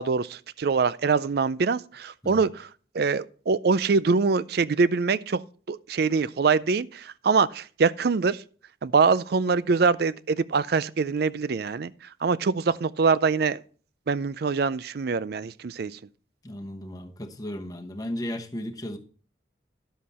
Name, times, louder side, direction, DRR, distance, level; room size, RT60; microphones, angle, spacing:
voice 1, 0.0-2.7 2.9-5.4 5.7-8.4 8.8-11.9 12.2-13.6 14.1-16.0, right 4 dB, 55° right, 0.4 m, -24 dB
voice 2, 16.4-19.0, left 1 dB, 20° left, 1.0 m, -35 dB
11.0 x 7.4 x 4.2 m
head